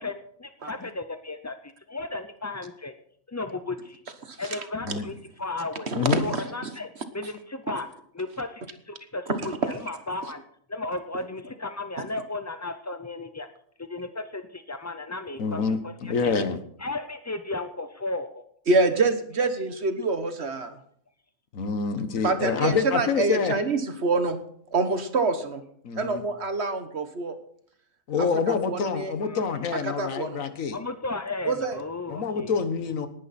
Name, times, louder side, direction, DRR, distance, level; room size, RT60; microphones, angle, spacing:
voice 1, 0.0-2.9 3.3-4.0 4.4-5.9 6.2-6.9 7.1-7.9 8.1-10.4 10.7-13.5 13.8-16.3 16.8-18.4 22.4-22.8 29.2-29.7 30.7-32.5, left 2 dB, 25° left, 9 dB, 0.3 m, -35 dB
voice 2, 5.9-6.4 9.4-9.5 18.7-20.7 22.2-24.4 24.7-25.6 26.0-27.4 28.2-29.1 29.8-30.4 31.4-31.8, right 3 dB, 50° right, 9 dB, 1.5 m, -26 dB
voice 3, 15.4-16.6 21.5-23.6 25.8-26.2 28.1-30.8 32.1-33.1, left 5 dB, 70° left, 10 dB, 1.6 m, -27 dB
19.0 x 10.5 x 4.2 m, 0.65 s
omnidirectional pair, 1.4 m